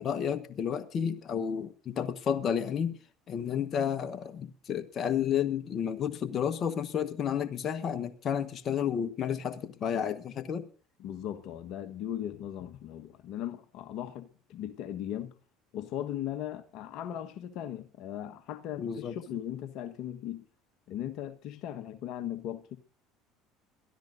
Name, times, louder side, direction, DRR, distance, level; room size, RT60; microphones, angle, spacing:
voice 1, 0.0-3.0 3.3-10.6 18.8-19.1, left 8 dB, 45° left, 1.3 m, -31 dB
voice 2, 11.0-15.3 15.7-20.5 20.9-22.8, left 11 dB, 65° left, 1.3 m, -38 dB
22.0 x 13.0 x 2.6 m
hypercardioid pair, 75°, 0 cm